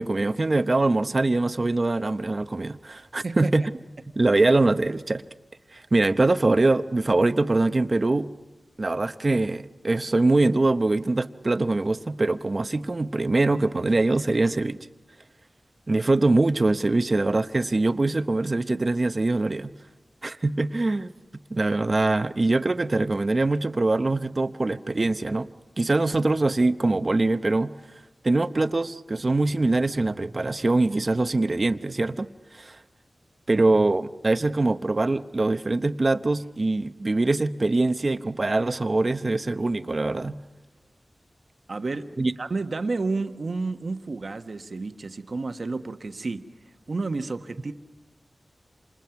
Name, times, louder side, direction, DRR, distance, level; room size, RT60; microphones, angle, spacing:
voice 1, 0.0-3.7 4.2-5.2 5.7-8.3 8.8-14.9 15.9-19.7 20.2-21.1 21.5-25.5 25.8-27.7 28.2-32.3 32.5-32.8 33.5-40.4 42.2-42.3, right 2 dB, 40° right, 11 dB, 0.9 m, -23 dB
voice 2, 3.2-3.6 41.7-46.5 46.9-47.7, right 3 dB, 60° right, 7 dB, 1.3 m, -31 dB
28.5 x 27.0 x 5.9 m, 1.1 s
wide cardioid pair, 80°, 0 cm